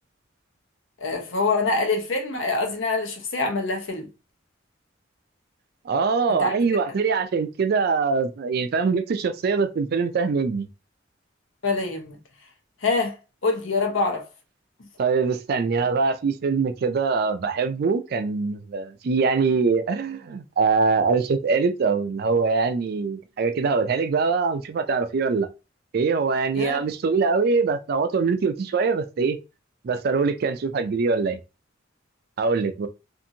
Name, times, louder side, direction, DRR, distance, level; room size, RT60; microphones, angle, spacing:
voice 1, 1.0-4.1 6.4-6.5 11.6-12.2 12.8-13.2 13.4-14.2 26.5-26.8, left 3 dB, 75° left, 0.8 m, -25 dB
voice 2, 5.9-10.7 15.0-25.5 25.9-29.4 29.8-31.4 32.4-32.9, right 4 dB, 50° right, 0.3 m, -23 dB
2.6 x 2.6 x 2.6 m
head